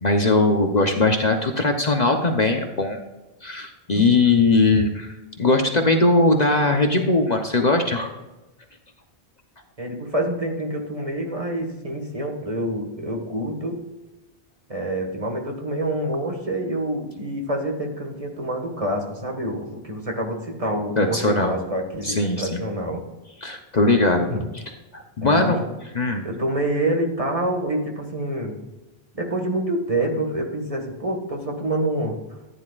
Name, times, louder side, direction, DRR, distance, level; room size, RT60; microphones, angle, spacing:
voice 1, 0.0-3.0 3.4-5.1 5.4-8.1 21.0-21.6 22.0-22.6 23.4-24.3 24.5-24.6 24.9-25.6 25.9-26.2, left 2 dB, 45° left, 4 dB, 1.0 m, -20 dB
voice 2, 9.8-13.8 14.7-23.0 24.3-24.4 25.2-25.6 26.2-28.6 29.1-32.2, right 1 dB, 35° right, 2 dB, 1.8 m, -27 dB
14.5 x 9.9 x 2.5 m, 1.1 s
omnidirectional pair, 1.1 m